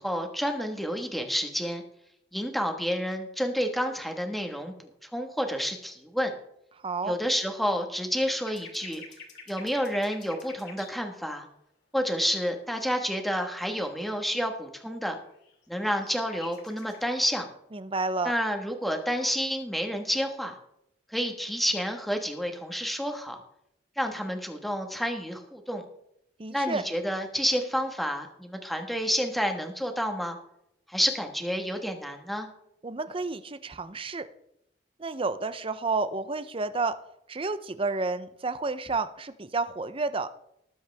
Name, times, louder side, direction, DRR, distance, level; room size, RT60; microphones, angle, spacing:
voice 1, 0.0-1.8 2.3-4.7 5.1-6.3 7.0-9.0 9.5-11.5 11.9-15.2 15.7-17.5 18.2-20.6 21.1-23.4 24.0-25.8 26.5-30.4 30.9-32.5, equal, ahead, 4 dB, 1.5 m, -29 dB
voice 2, 6.8-7.2 17.7-18.3 26.4-26.8 32.8-34.3 35.0-37.0 37.3-40.3, right 3 dB, 30° right, 12 dB, 0.7 m, -30 dB
sound 1, 8.5-10.9 13.4-13.5 14.4-14.5 15.3-17.0, left 5 dB, 65° left, 2.6 m, -48 dB
19.5 x 7.8 x 3.5 m, 0.77 s
head